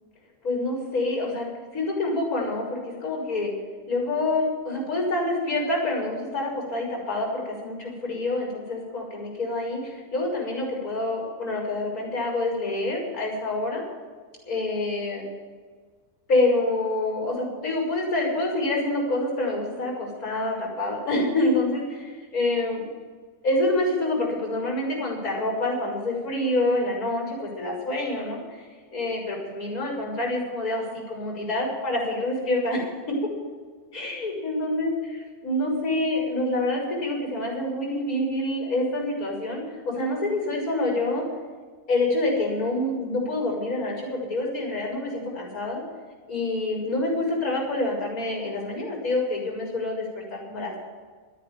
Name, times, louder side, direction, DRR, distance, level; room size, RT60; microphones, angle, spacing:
voice 1, 0.4-1.5 1.7-3.5 3.9-13.8 14.4-15.2 16.3-22.9 23.4-33.2 33.9-41.3 41.9-45.8 46.3-50.8, left 2 dB, 65° left, -1 dB, 6.3 m, -27 dB
13.0 x 10.5 x 8.9 m, 1.5 s
omnidirectional pair, 1.6 m